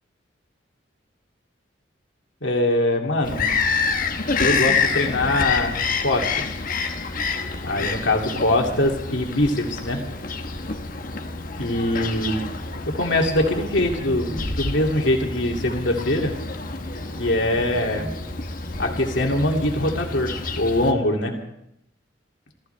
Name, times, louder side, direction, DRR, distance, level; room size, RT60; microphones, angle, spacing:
voice 1, 2.4-3.5 4.4-6.6 7.6-10.0 11.6-12.4 12.9-16.3 17.2-18.1 18.8-21.3, left 1 dB, 70° left, 1 dB, 2.6 m, -23 dB
Bird vocalization bird call bird song, 3.2-20.9, left 4 dB, 45° left, 1.3 m, -28 dB
sound 1, 14.0-21.4, equal, 65° right, 3.0 m, -42 dB
28.0 x 14.5 x 3.4 m, 0.78 s
head